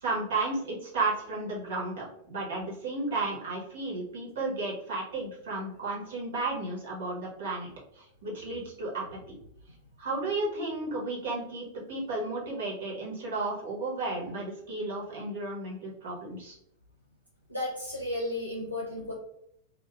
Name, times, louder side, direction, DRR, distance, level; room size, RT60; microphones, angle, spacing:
voice 1, 0.0-9.4 10.0-16.5, right 2 dB, 60° right, -3 dB, 1.2 m, -33 dB
voice 2, 17.5-19.1, left 1 dB, 90° right, -5 dB, 0.6 m, -33 dB
2.6 x 2.5 x 3.4 m, 0.72 s
figure-of-eight pair, 90°, 0 cm